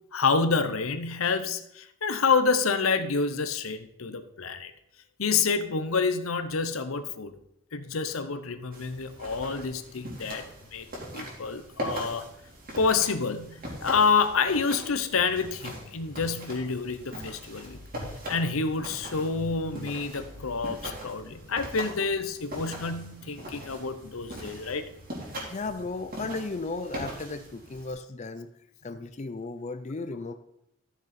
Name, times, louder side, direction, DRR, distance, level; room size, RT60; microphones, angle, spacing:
voice 1, 0.1-4.7 5.2-7.4 7.7-10.9 11.1-12.3 12.8-17.8 18.1-24.8, left 4 dB, 80° left, 11 dB, 0.8 m, -28 dB
sound 1, 8.7-27.9, equal, 45° right, 3.2 m, -41 dB
voice 2, 25.5-28.5 28.8-30.3, left 3 dB, 35° left, 9 dB, 0.5 m, -35 dB
13.0 x 6.7 x 4.3 m, 0.79 s
head